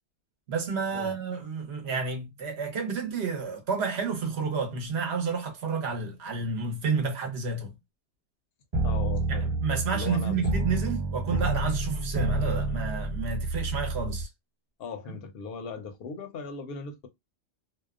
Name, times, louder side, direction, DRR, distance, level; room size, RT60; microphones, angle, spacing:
voice 1, 0.5-7.7 9.3-14.3, right 5 dB, 65° right, 1.0 m, -30 dB
sound 1, 8.7-14.2, right 2 dB, 35° right, 1.2 m, -29 dB
voice 2, 8.8-10.5 14.8-17.1, left 5 dB, 60° left, 0.8 m, -39 dB
2.7 x 2.1 x 2.3 m
omnidirectional pair, 1.2 m